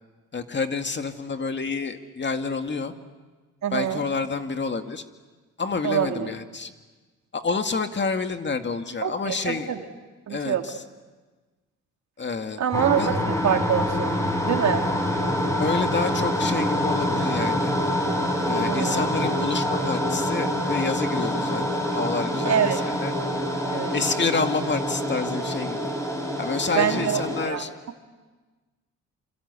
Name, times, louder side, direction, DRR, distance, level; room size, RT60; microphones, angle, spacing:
voice 1, 0.3-2.9 3.7-5.0 5.6-6.7 7.3-9.7 10.3-10.8 12.2-12.6 12.9-13.2 15.6-17.7 18.4-23.1 23.9-25.8 26.4-27.7, left 4 dB, 35° left, 6 dB, 2.2 m, -28 dB
voice 2, 3.6-4.0 5.8-6.3 9.0-9.8 10.3-10.6 12.6-14.2 14.4-14.9 18.7-19.1 22.4-22.8 23.6-23.9 26.8-27.2 27.5-27.6, right 8 dB, 60° right, 4 dB, 2.6 m, -25 dB
sound 1, 12.7-27.5, equal, 10° left, 7.7 m, -26 dB
27.5 x 25.5 x 8.4 m, 1.3 s
cardioid pair, 75°, 31 cm